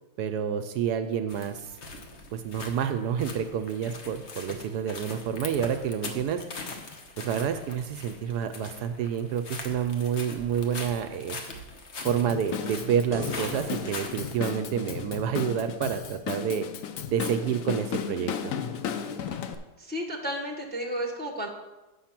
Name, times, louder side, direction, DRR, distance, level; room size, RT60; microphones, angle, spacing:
voice 1, 0.2-1.7 2.3-6.4 7.2-11.4 12.0-16.7 17.1-18.5, right 8 dB, 75° right, 8 dB, 1.1 m, -29 dB
sound 1, 1.3-14.3, left 3 dB, 45° left, 1.1 m, -41 dB
Drum kit / Drum, 12.1-19.6, left 8 dB, 65° left, 0.9 m, -35 dB
sound 2, 13.1-16.4 19.3-19.4, left 1 dB, 30° left, 0.6 m, -40 dB
voice 2, 19.8-21.5, equal, 5° left, 1 dB, 0.9 m, -32 dB
8.5 x 6.0 x 5.9 m, 1.1 s
omnidirectional pair, 1.9 m